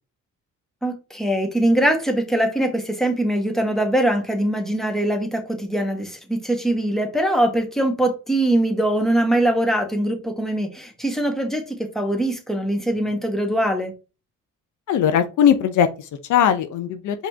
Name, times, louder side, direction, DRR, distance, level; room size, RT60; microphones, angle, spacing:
voice 1, 0.8-13.9, right 1 dB, ahead, 1.3 m, -22 dB
voice 2, 14.9-17.3, left 9 dB, 75° left, 0.7 m, -19 dB
4.9 x 3.1 x 3.5 m
cardioid pair, 90°, 30 cm